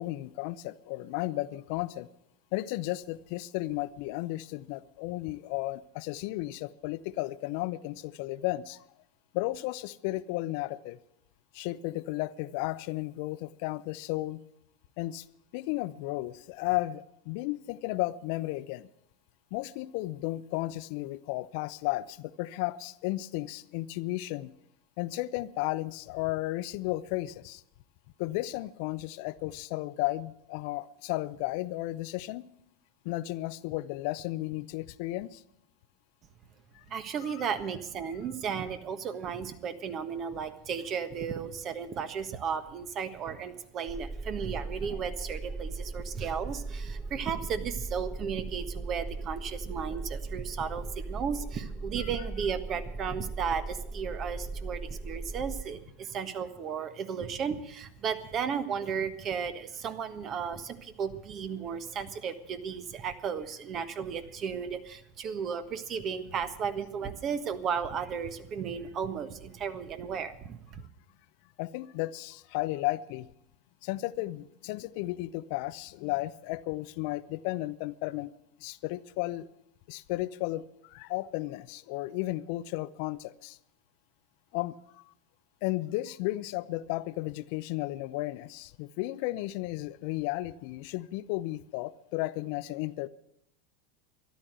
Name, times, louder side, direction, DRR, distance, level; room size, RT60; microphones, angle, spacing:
voice 1, 0.0-2.1 2.5-8.8 9.3-11.0 11.5-14.4 15.0-15.2 15.5-18.9 19.5-24.5 25.0-27.6 28.2-32.4 33.0-35.4 37.3-37.5 44.9-45.0 52.0-52.1 71.6-73.3 73.8-78.3 78.6-79.5 79.9-83.6 84.5-85.1 85.6-93.1, left 18 dB, 60° left, 16 dB, 0.5 m, -34 dB
voice 2, 36.9-70.8, right 7 dB, 40° right, 10 dB, 1.4 m, -34 dB
sound 1, 43.9-55.6, right 3 dB, 5° right, 2.0 m, -38 dB
13.5 x 11.0 x 7.7 m, 0.75 s
hypercardioid pair, 95°, 0 cm